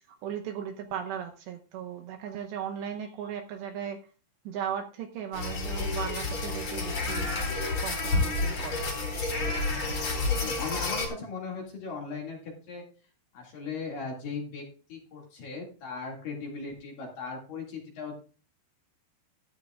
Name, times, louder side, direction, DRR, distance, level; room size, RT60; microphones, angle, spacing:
voice 1, 0.2-4.0 4.5-7.4 7.8-8.9, right 9 dB, 75° right, 4 dB, 2.7 m, -37 dB
sound 1, 5.3-11.1, left 3 dB, 35° left, 3.9 m, -30 dB
voice 2, 10.1-12.8 13.3-18.2, left 4 dB, 50° left, -1 dB, 3.4 m, -38 dB
14.0 x 11.5 x 2.4 m, 0.37 s
omnidirectional pair, 5.7 m